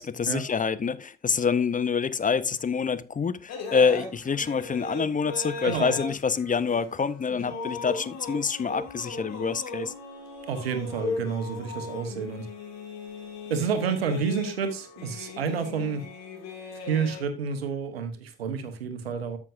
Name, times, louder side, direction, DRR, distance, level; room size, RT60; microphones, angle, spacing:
voice 1, 0.0-9.9, left 6 dB, 25° left, 0.8 m, -26 dB
sound 1, 3.5-17.2, left 3 dB, 60° left, 2.5 m, -38 dB
voice 2, 5.6-6.0 10.5-12.5 13.5-16.0 16.8-19.4, right 6 dB, 90° right, 1.1 m, -29 dB
13.0 x 6.0 x 2.6 m
hypercardioid pair, 50°, 29 cm